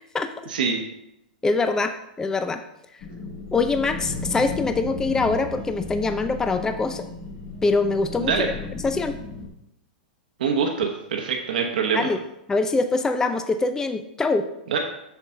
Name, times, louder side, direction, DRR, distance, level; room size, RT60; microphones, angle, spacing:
voice 1, 0.5-0.8 8.2-8.5 10.4-12.1 14.7-14.8, right 6 dB, 75° right, 2 dB, 1.0 m, -24 dB
voice 2, 1.4-2.6 3.5-7.1 7.6-8.5 8.8-9.2 11.9-12.2 12.5-14.4, left 3 dB, 10° left, 8 dB, 0.4 m, -23 dB
sound 1, 3.0-9.5, left 3 dB, 65° left, 3.2 m, -35 dB
7.1 x 7.0 x 3.7 m, 0.83 s
hypercardioid pair, 115°, 5 cm